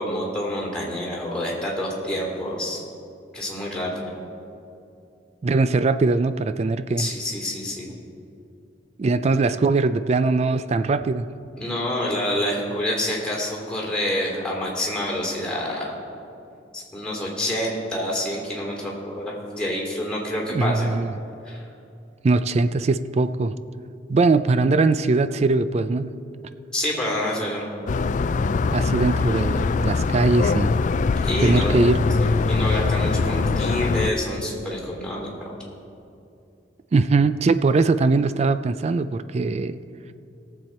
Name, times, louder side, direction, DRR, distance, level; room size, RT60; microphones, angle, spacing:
voice 1, 0.0-2.8 3.3-4.1 7.0-8.0 11.6-15.9 16.7-20.9 21.4-21.6 26.7-27.7 31.2-31.8 32.2-35.5, left 1 dB, 5° left, -4 dB, 2.6 m, -27 dB
voice 2, 5.4-7.1 9.0-11.3 20.5-21.1 22.2-23.5 24.1-26.1 28.7-30.8 31.4-32.1 36.9-39.8, right 3 dB, 35° right, 12 dB, 0.3 m, -21 dB
sound 1, 27.9-34.1, left 4 dB, 45° left, 0.3 m, -22 dB
18.5 x 7.5 x 4.3 m, 2.6 s
head